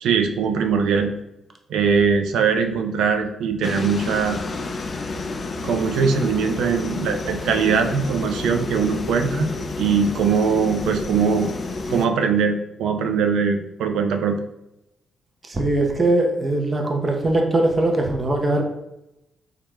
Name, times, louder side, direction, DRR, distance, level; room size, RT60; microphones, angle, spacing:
voice 1, 0.0-1.1 1.7-4.4 5.6-9.5 9.8-11.5 11.9-14.4, right 5 dB, 75° right, 5 dB, 0.4 m, -21 dB
sound 1, 3.6-12.1, left 3 dB, 45° left, 0.4 m, -30 dB
voice 2, 15.5-18.6, right 2 dB, 35° right, 2 dB, 0.6 m, -21 dB
3.1 x 2.4 x 3.4 m, 0.87 s
supercardioid pair, 50°, 0 cm